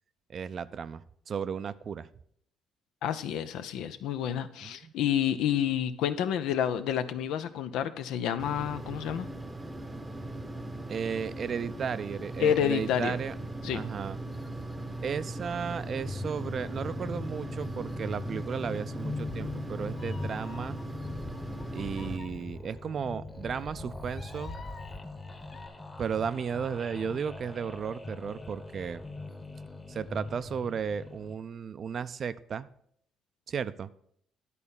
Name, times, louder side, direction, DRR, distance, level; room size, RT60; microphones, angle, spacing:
voice 1, 0.3-2.1 4.6-4.9 10.9-13.3 13.7-14.2 15.0-20.8 21.7-24.5 26.0-29.0 29.9-32.7 33.5-33.9, right 7 dB, 50° right, 15 dB, 0.5 m, -34 dB
voice 2, 3.0-9.3 12.4-13.2 13.6-13.8, left 9 dB, 80° left, 11 dB, 0.7 m, -29 dB
sound 1, 8.4-22.2, right 2 dB, 15° right, 0.8 m, -39 dB
sound 2, 15.4-31.4, left 3 dB, 15° left, 1.2 m, -41 dB
Meow, 19.0-25.7, left 2 dB, 40° left, 2.0 m, -45 dB
11.0 x 4.2 x 7.1 m, 0.67 s
cardioid pair, 85°, 0 cm